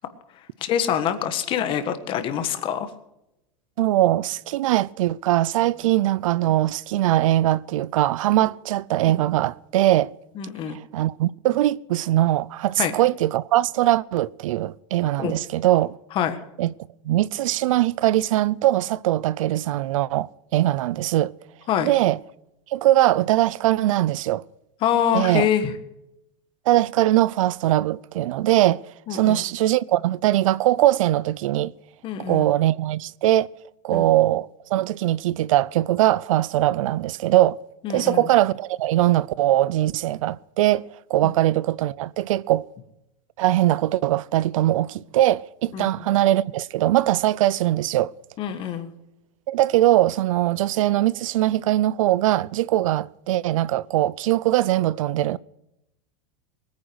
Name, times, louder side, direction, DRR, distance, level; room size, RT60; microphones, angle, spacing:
voice 1, 0.6-2.9 10.4-10.8 12.8-12.9 15.2-15.3 16.1-16.4 21.7-21.9 24.8-25.7 29.1-29.4 32.0-32.5 33.9-34.0 37.8-38.3 41.2-41.3 45.7-45.9 48.4-48.9, left 9 dB, 30° left, 1.6 m, -25 dB
voice 2, 3.8-10.1 10.9-16.0 16.6-16.7 17.0-21.3 21.8-22.2 22.7-24.4 25.1-25.5 26.7-28.8 29.1-31.7 32.3-33.5 33.8-37.6 37.9-42.7 43.4-48.1 49.5-55.4, right 14 dB, 85° right, 0.5 m, -21 dB
20.0 x 9.7 x 6.3 m
supercardioid pair, 160°, 17 cm